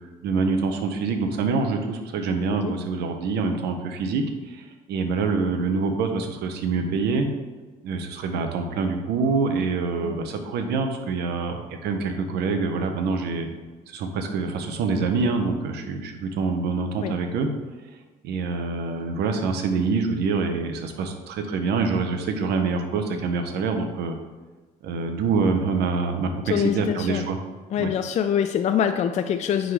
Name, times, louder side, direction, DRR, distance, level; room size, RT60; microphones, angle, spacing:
voice 1, 0.2-7.3 7.8-13.5 13.9-17.5 18.2-24.1 24.8-27.4 27.8-27.9, right 4 dB, 75° right, 5 dB, 0.9 m, -25 dB
voice 2, 26.5-27.2 27.7-29.7, left 8 dB, 45° left, 7 dB, 0.4 m, -24 dB
9.1 x 3.9 x 3.3 m, 1.3 s
cardioid pair, 110°, 17 cm